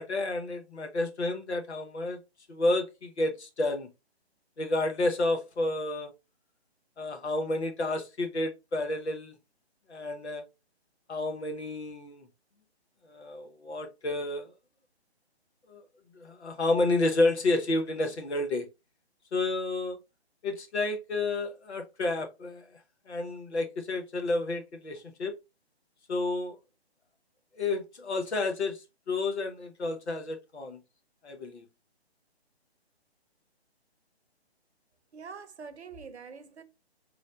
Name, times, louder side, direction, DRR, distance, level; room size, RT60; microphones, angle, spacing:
voice 1, 0.0-2.2 2.5-3.9 4.6-6.1 7.0-9.3 9.9-10.4 11.1-12.3 13.1-14.5 15.7-15.8 16.1-18.7 19.3-20.0 20.4-22.7 23.1-25.3 26.1-26.6 27.6-30.8 31.2-31.6, left 2 dB, 80° left, 1.1 m, -30 dB
voice 2, 35.1-36.6, right 5 dB, 80° right, 0.7 m, -44 dB
4.0 x 3.1 x 2.4 m
figure-of-eight pair, 150°, 33 cm